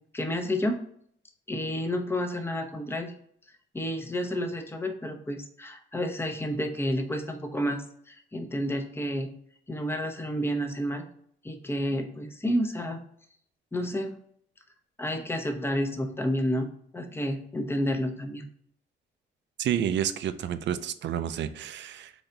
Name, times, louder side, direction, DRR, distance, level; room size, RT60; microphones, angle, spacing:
voice 1, 0.1-0.8 1.5-3.1 3.7-9.3 9.7-11.0 11.4-13.0 13.7-14.2 15.0-16.7 16.9-18.5, equal, 10° left, 5 dB, 0.8 m, -30 dB
voice 2, 19.6-22.1, right 9 dB, 65° right, 11 dB, 0.5 m, -30 dB
4.0 x 3.4 x 3.8 m, 0.66 s
cardioid pair, 90°, 20 cm